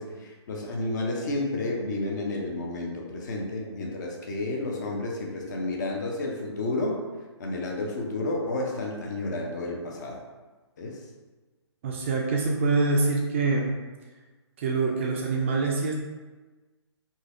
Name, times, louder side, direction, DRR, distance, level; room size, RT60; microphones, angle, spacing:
voice 1, 0.0-7.0 7.4-10.2 10.8-11.0, left 2 dB, 40° left, 0 dB, 0.7 m, -31 dB
voice 2, 11.8-13.7 14.6-15.9, right 3 dB, 25° right, -1 dB, 0.4 m, -25 dB
4.0 x 2.8 x 2.5 m, 1.3 s
figure-of-eight pair, 145°, 15 cm